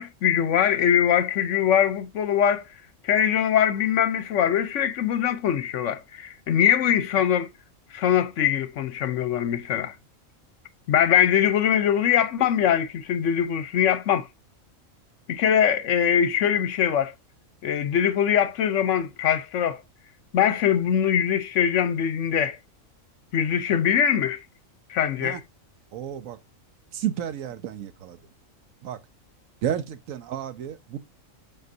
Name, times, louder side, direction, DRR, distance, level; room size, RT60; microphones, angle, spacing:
voice 1, 0.0-2.6 3.0-7.5 7.9-9.9 10.9-14.3 15.3-17.1 17.6-19.8 20.3-22.6 23.3-24.4 24.9-25.4, left 9 dB, 70° left, 1.0 m, -22 dB
voice 2, 25.9-26.4 26.9-28.2 28.8-29.0 29.6-31.0, right 10 dB, 85° right, 1.1 m, -31 dB
7.8 x 4.5 x 2.7 m
omnidirectional pair, 1.4 m